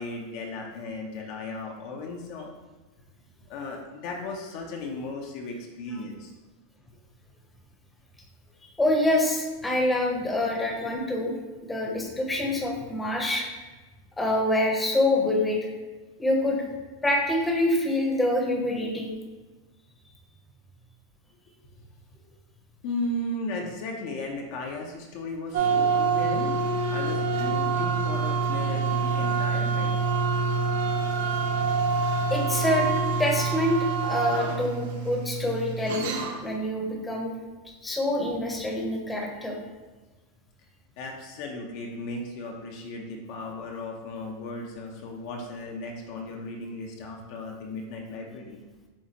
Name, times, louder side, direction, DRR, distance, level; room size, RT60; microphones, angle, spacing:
voice 1, 0.0-2.5 3.5-6.3 21.5-21.6 22.8-26.6 26.9-30.0 41.0-48.6, left 2 dB, 55° left, 1 dB, 0.8 m, -36 dB
voice 2, 8.8-11.3 11.7-13.5 14.2-15.7 16.2-16.6 17.0-19.1 32.3-32.9 33.2-36.1 36.4-37.4 37.8-39.6, left 1 dB, 10° left, 0 dB, 0.8 m, -26 dB
sound 1, 25.5-36.5, right 4 dB, 70° right, 0.6 m, -26 dB
7.1 x 2.4 x 2.9 m, 1.3 s
supercardioid pair, 135°, 0 cm